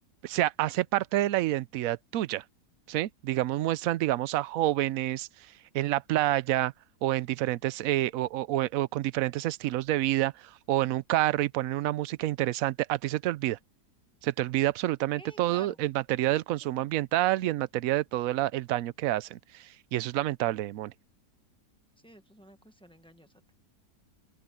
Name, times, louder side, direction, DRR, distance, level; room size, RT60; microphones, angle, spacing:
voice 1, 0.2-2.4 2.9-5.3 5.7-6.7 7.0-13.6 14.2-20.9, right 15 dB, 70° right, 0.9 m, -28 dB
voice 2, 15.1-15.8 22.0-23.3, right 1 dB, 5° left, 1.3 m, -52 dB
open air
omnidirectional pair, 1.7 m